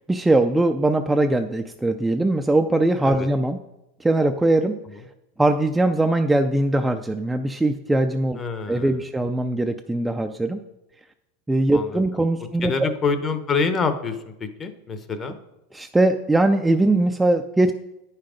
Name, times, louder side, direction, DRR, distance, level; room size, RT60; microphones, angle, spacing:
voice 1, 0.1-3.6 4.0-4.8 5.4-8.4 8.7-10.6 11.5-12.9 15.7-17.7, right 2 dB, 5° right, 5 dB, 0.4 m, -21 dB
voice 2, 8.4-9.0 11.7-12.0 12.6-15.4, left 4 dB, 25° left, 9 dB, 0.8 m, -26 dB
9.7 x 5.7 x 5.1 m, 0.93 s
supercardioid pair, 135°, 0 cm